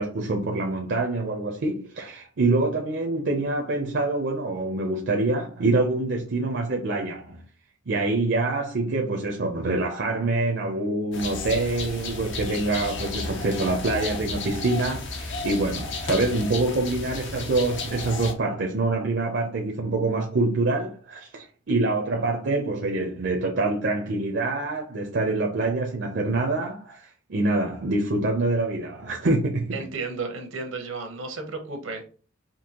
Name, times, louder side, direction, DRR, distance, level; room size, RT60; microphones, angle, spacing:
voice 1, 0.0-7.4 7.9-29.8, right 2 dB, 60° right, 0.6 m, -25 dB
sound 1, 11.1-18.3, left 3 dB, 65° left, 0.8 m, -33 dB
voice 2, 29.7-32.1, right 4 dB, 90° right, 1.0 m, -33 dB
5.2 x 2.7 x 2.9 m
head